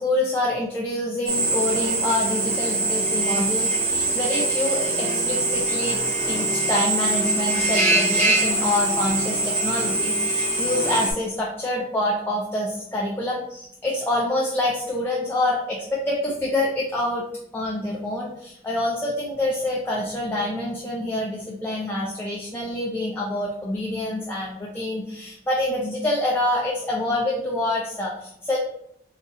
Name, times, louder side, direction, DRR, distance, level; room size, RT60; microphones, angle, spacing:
voice 1, 0.0-6.0 6.3-17.2 17.5-28.6, left 1 dB, 10° left, -4 dB, 0.4 m, -26 dB
Drill, 1.3-11.1, right 2 dB, 35° right, 0.6 m, -23 dB
2.6 x 2.4 x 4.0 m, 0.73 s
head